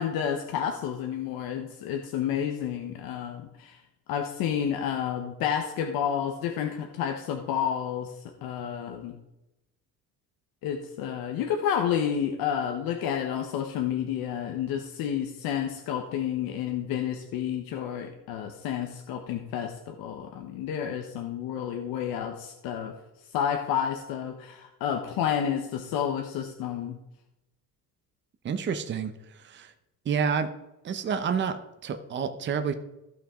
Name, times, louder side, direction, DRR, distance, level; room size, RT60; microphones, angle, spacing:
voice 1, 0.0-3.8 4.1-8.1 8.4-9.1 10.6-22.9 23.3-27.0, left 9 dB, 90° left, 4 dB, 1.1 m, -30 dB
voice 2, 28.4-29.1 29.4-29.7 30.1-30.5 30.8-32.7, right 6 dB, 35° right, 7 dB, 0.8 m, -29 dB
15.0 x 5.9 x 3.7 m, 0.91 s
cardioid pair, 155°, 34 cm